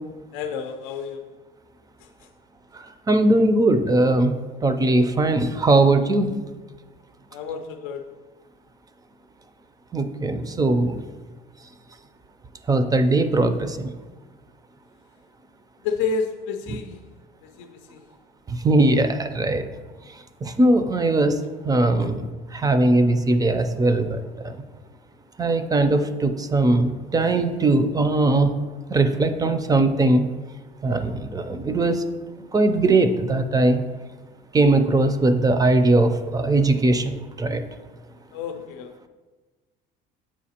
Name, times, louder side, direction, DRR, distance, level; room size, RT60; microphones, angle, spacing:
voice 1, 0.3-1.3 2.0-2.1 7.3-8.1 15.8-17.0 17.4-18.0 38.3-39.0, left 5 dB, 90° left, 7 dB, 0.5 m, -30 dB
voice 2, 2.7-4.3 4.6-6.4 9.9-11.0 12.7-13.9 16.7-16.8 18.5-19.6 20.4-21.4 21.6-24.6 25.4-28.5 28.9-30.3 30.8-32.0 32.5-33.8 34.5-37.6, right 2 dB, 20° right, 9 dB, 0.4 m, -20 dB
7.3 x 4.6 x 2.9 m, 1.3 s
cardioid pair, 110°, 19 cm